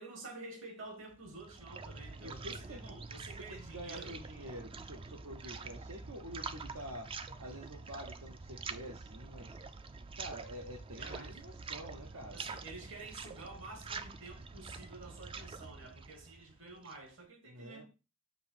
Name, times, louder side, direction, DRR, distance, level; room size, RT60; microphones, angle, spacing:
voice 1, 0.0-4.2 5.4-5.7 10.9-11.4 12.3-17.8, right 3 dB, 70° right, 2.1 m, -50 dB
sound 1, 1.1-17.1, right 4 dB, 25° right, 0.4 m, -46 dB
voice 2, 2.2-2.9 3.5-7.1 7.4-9.6 10.1-12.4 17.5-17.8, equal, 85° right, 1.2 m, -47 dB
6.6 x 2.9 x 5.8 m
head